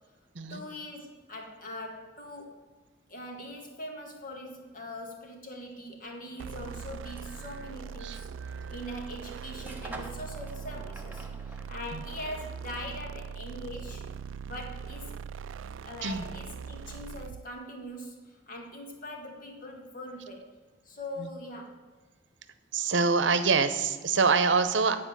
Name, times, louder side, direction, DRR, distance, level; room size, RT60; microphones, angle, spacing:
voice 1, 0.5-2.6 3.1-14.0 14.4-15.1 15.8-20.5 20.8-21.7, left 1 dB, 45° left, 2 dB, 1.8 m, -42 dB
sound 1, 6.3-13.1, right 2 dB, 10° right, 0.9 m, -50 dB
sound 2, 6.4-17.5, right 6 dB, 90° right, 0.3 m, -41 dB
voice 2, 8.0-8.7 11.9-12.0 16.0-16.2 21.2-21.3 22.7-25.0, right 4 dB, 70° right, 11 dB, 0.8 m, -26 dB
10.5 x 4.8 x 7.3 m, 1.4 s
head